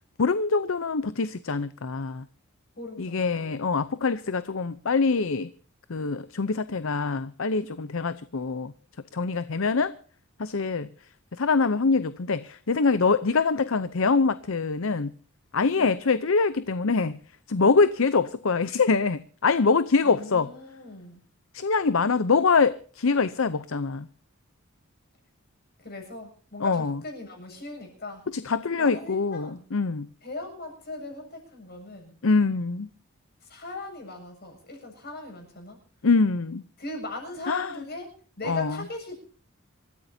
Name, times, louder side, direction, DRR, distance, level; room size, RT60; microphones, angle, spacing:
voice 1, 0.2-2.2 3.0-5.5 5.9-8.7 9.1-9.9 10.4-10.9 11.4-15.1 15.5-17.2 17.5-20.5 21.5-24.1 26.6-27.0 28.3-30.1 32.2-32.9 36.0-36.6 37.5-37.7 38.4-38.8, left 4 dB, 65° left, 0.7 m, -24 dB
voice 2, 2.8-3.5 15.7-16.0 20.0-21.2 25.8-28.3 28.8-29.6 30.2-32.1 33.4-35.8 36.8-38.1 38.4-39.1, left 2 dB, 45° left, 7.4 m, -39 dB
27.0 x 14.0 x 2.7 m
head